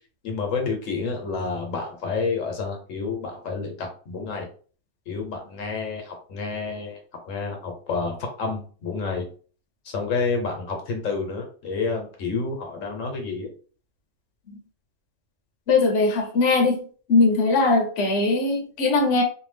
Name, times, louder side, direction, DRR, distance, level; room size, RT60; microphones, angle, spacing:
voice 1, 0.2-4.5 5.1-7.0 7.3-9.3 9.8-13.5, left 4 dB, 80° left, 1.2 m, -29 dB
voice 2, 15.7-16.8 17.1-19.2, left 3 dB, 60° left, 0.9 m, -20 dB
2.7 x 2.4 x 3.2 m
omnidirectional pair, 1.3 m